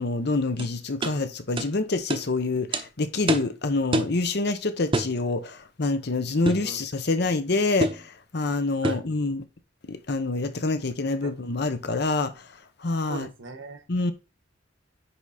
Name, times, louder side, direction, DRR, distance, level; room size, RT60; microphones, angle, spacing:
voice 1, 0.0-9.4 9.9-12.3 12.8-13.3 13.9-14.1, left 3 dB, 60° left, 0.9 m, -26 dB
sound 1, 0.6-0.7 1.0-1.2 1.6-1.7 2.1-2.3 2.7-2.9 3.3-3.5 3.9-4.2 4.9-5.2 6.5-6.7 7.8-8.1 8.8-9.1, right 1 dB, 25° right, 0.8 m, -26 dB
voice 2, 13.1-13.8, right 3 dB, 85° right, 1.3 m, -39 dB
9.7 x 3.6 x 4.2 m
head